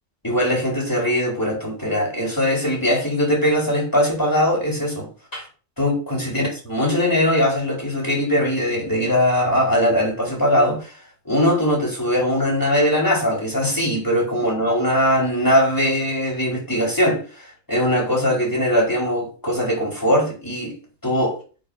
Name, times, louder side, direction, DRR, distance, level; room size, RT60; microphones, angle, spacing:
voice 1, 0.2-5.5 5.8-11.0 11.2-20.8 21.0-21.4, equal, 20° left, 4.5 m, -21 dB
8.3 x 6.4 x 6.5 m
omnidirectional pair, 1.1 m